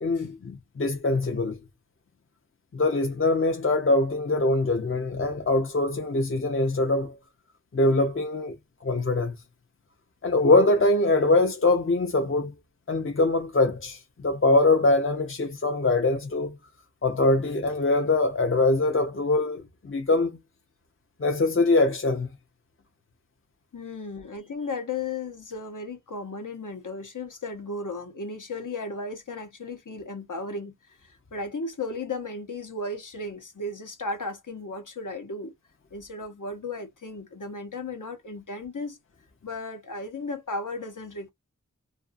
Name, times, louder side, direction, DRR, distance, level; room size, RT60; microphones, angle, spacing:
voice 1, 0.0-1.6 2.7-7.2 7.7-8.6 8.8-9.3 10.2-12.5 12.9-16.6 17.0-20.4 21.2-22.3, left 2 dB, 40° left, 0.6 m, -23 dB
voice 2, 23.7-35.5 35.9-39.0 39.4-41.3, left 3 dB, 80° left, 1.0 m, -35 dB
2.6 x 2.5 x 2.5 m
wide cardioid pair, 50°, 31 cm